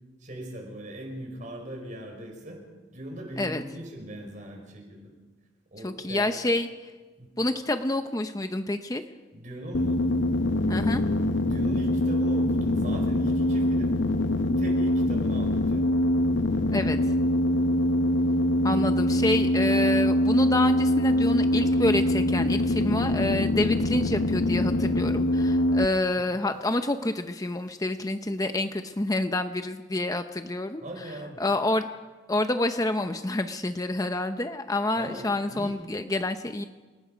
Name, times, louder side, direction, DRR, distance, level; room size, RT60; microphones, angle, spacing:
voice 1, 0.2-2.6 2.9-5.1 5.7-6.4 7.2-7.3 9.3-10.0 11.4-14.0 14.4-15.9 20.4-20.5 26.1-26.4 30.8-31.4 35.0-35.9, right 1 dB, 45° right, 2 dB, 5.2 m, -39 dB
voice 2, 5.8-6.7 7.4-9.0 10.7-11.0 16.7-17.0 18.6-30.8 31.4-31.9 32.3-36.6, left 2 dB, 20° left, 8 dB, 0.7 m, -28 dB
sound 1, 9.7-25.9, left 1 dB, 85° left, 0.9 m, -24 dB
29.0 x 19.0 x 5.1 m, 1.3 s
head